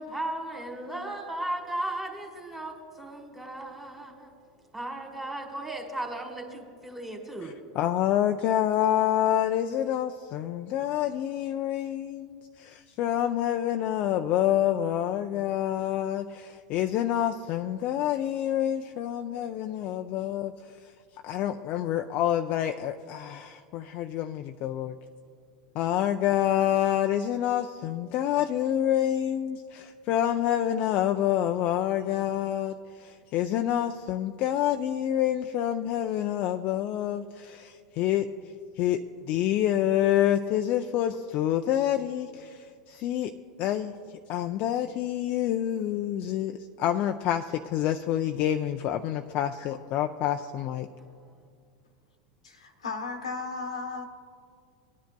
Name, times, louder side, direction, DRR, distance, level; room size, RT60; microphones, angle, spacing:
voice 1, 0.0-4.3 4.7-7.6, right 1 dB, 10° right, 1.8 m, -36 dB
voice 2, 7.8-20.5 21.2-25.0 25.7-38.3 38.8-43.3 43.6-43.9 44.3-50.9, left 11 dB, 50° left, 0.4 m, -27 dB
voice 3, 52.4-54.0, left 4 dB, 85° left, 1.1 m, -35 dB
19.0 x 10.5 x 2.2 m
hypercardioid pair, 90°, 3 cm